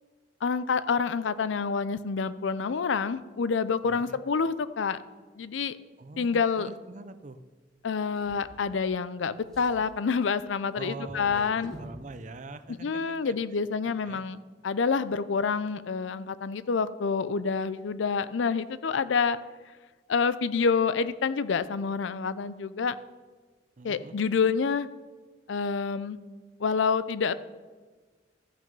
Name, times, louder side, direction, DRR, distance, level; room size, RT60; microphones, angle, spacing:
voice 1, 0.4-5.0 5.4-5.8 6.2-6.7 7.8-11.7 12.8-14.4 14.6-19.4 20.1-23.0 23.8-24.9 25.5-26.2 26.6-27.3, left 5 dB, 85° left, 15 dB, 0.5 m, -27 dB
voice 2, 3.8-4.2 6.0-7.4 10.7-13.3 14.0-14.2 23.8-24.1, right 3 dB, 40° right, 11 dB, 0.5 m, -43 dB
Drawer open or close, 8.1-9.1 9.4-12.0 12.9-13.0 13.4-13.5, equal, 5° left, 2.2 m, -49 dB
14.0 x 6.1 x 5.3 m, 1.4 s
head